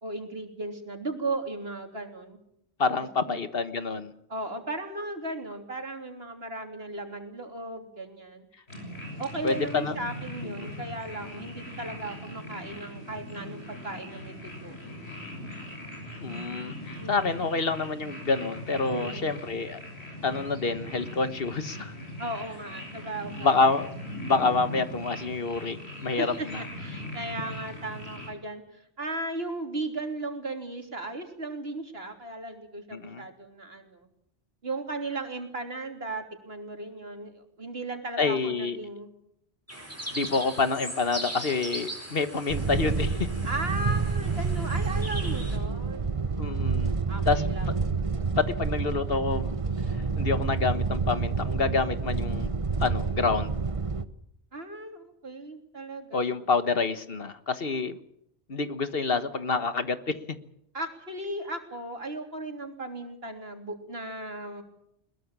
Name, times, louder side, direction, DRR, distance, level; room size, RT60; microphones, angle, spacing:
voice 1, 0.0-2.4 3.3-3.4 4.3-8.5 9.2-14.8 17.0-17.4 18.9-19.4 22.2-23.6 26.2-26.5 26.8-34.1 34.6-39.1 43.4-46.2 47.1-47.9 54.5-56.3 60.7-64.6, right 2 dB, 65° right, 5 dB, 3.6 m, -36 dB
voice 2, 2.8-4.1 9.4-9.9 10.4-10.7 16.2-19.8 20.2-21.9 23.4-23.9 24.3-25.8 26.0-26.6 32.9-33.2 38.2-38.8 40.1-43.3 46.4-46.9 47.2-47.4 48.4-49.6 49.9-52.5 52.8-53.6 56.1-58.0 58.5-60.2, left 4 dB, 65° left, 11 dB, 1.6 m, -27 dB
sound 1, 8.7-28.3, left 1 dB, 80° left, 7.1 m, -40 dB
sound 2, 39.7-45.6, right 1 dB, 15° right, 5.8 m, -39 dB
sound 3, 42.5-54.0, right 4 dB, 30° right, 1.0 m, -28 dB
21.5 x 21.5 x 7.4 m, 0.75 s
omnidirectional pair, 1.1 m